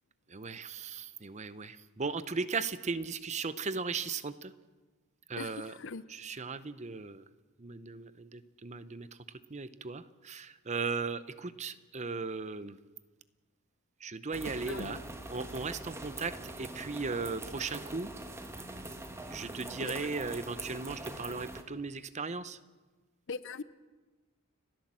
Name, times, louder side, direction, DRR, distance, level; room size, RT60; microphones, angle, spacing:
voice 1, 0.3-4.5 5.3-5.8 6.1-7.3 7.6-9.1 9.5-12.8 14.0-18.1 19.3-22.6, right 4 dB, 30° right, 14 dB, 0.7 m, -37 dB
voice 2, 5.4-6.0 14.7-15.0 19.8-20.0 23.3-23.6, left 4 dB, 55° left, 16 dB, 0.7 m, -40 dB
sound 1, 14.3-21.6, right 1 dB, 10° right, 1.3 m, -43 dB
30.0 x 12.0 x 7.4 m, 1.3 s
head